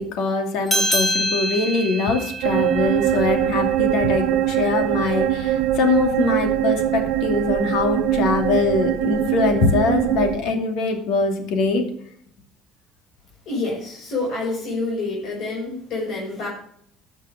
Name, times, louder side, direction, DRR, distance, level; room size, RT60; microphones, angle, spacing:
voice 1, 0.0-11.9, left 3 dB, 75° left, 4 dB, 2.6 m, -22 dB
sound 1, 0.7-5.6, equal, 20° left, 2.8 m, -28 dB
sound 2, 2.4-10.3, right 12 dB, 85° right, 0.8 m, -22 dB
voice 2, 13.5-16.5, left 2 dB, 55° left, -5 dB, 5.7 m, -27 dB
13.0 x 6.6 x 6.6 m, 0.66 s
cardioid pair, 125°, 0 cm